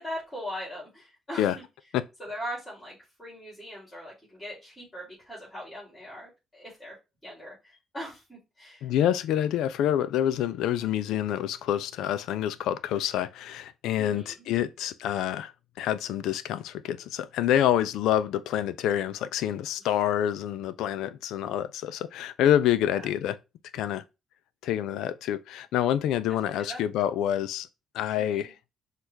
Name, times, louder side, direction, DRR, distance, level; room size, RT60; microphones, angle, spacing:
voice 1, 0.0-1.6 2.2-6.9 7.2-8.9 14.0-14.4 19.8-19.9 22.9-23.1 26.6-27.0 28.2-28.5, equal, 15° left, 3.0 m, -40 dB
voice 2, 8.8-15.5 15.8-23.4 23.7-24.0 24.6-27.7 27.9-28.5, left 11 dB, 90° left, 0.4 m, -27 dB
6.1 x 2.4 x 3.3 m
cardioid pair, 90°, 0 cm